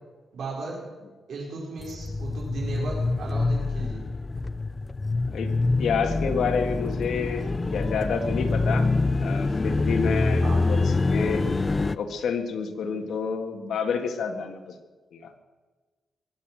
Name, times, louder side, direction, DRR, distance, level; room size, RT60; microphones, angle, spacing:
voice 1, 0.3-0.8 1.3-4.1 10.4-10.7 12.8-13.1, right 3 dB, 65° right, -3 dB, 5.1 m, -36 dB
sound 1, 1.8-12.0, left 3 dB, 25° left, 0.5 m, -25 dB
voice 2, 5.8-8.9 9.2-11.4 11.9-14.7 15.1-15.4, left 5 dB, 75° left, 5 dB, 1.8 m, -29 dB
22.5 x 8.3 x 7.7 m, 1.3 s
wide cardioid pair, 130°, 0 cm